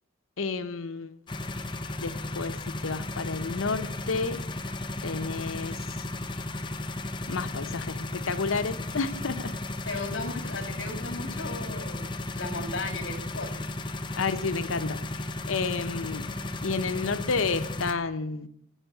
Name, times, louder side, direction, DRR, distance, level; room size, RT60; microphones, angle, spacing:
voice 1, 0.4-1.2 2.0-4.4 5.0-6.1 7.3-9.5 14.2-18.5, left 4 dB, 85° left, 0.8 m, -31 dB
sound 1, 1.3-17.9, left 2 dB, 25° left, 0.6 m, -35 dB
voice 2, 9.9-13.5, left 3 dB, 60° left, 2.4 m, -36 dB
16.5 x 5.7 x 6.8 m
head